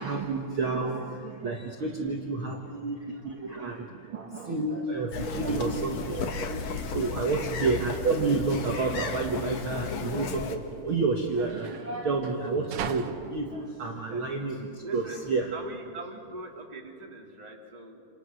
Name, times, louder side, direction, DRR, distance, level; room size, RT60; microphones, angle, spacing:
voice 1, 0.0-15.5, right 3 dB, 45° right, 1 dB, 2.0 m, -30 dB
voice 2, 1.8-3.0 7.1-7.9 13.9-14.3 14.8-15.2 15.5-18.1, right 2 dB, 15° right, 0 dB, 2.3 m, -44 dB
sound 1, 5.1-10.6, left 5 dB, 55° left, 2.5 m, -34 dB
sound 2, 5.6-15.3, right 8 dB, 75° right, 2.7 m, -43 dB
29.0 x 28.5 x 6.4 m, 2.5 s
omnidirectional pair, 3.9 m